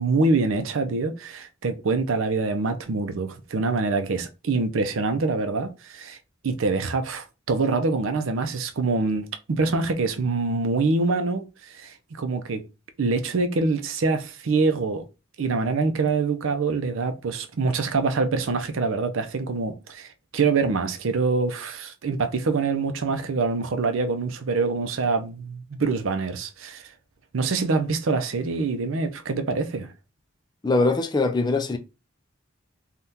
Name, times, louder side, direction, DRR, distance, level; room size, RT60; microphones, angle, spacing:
voice 1, 0.0-6.2 6.4-12.6 13.0-15.0 15.4-26.9 27.3-29.9, right 3 dB, 80° right, 0.5 m, -25 dB
voice 2, 30.6-31.8, left 3 dB, 20° left, 0.3 m, -22 dB
3.5 x 2.3 x 2.7 m
head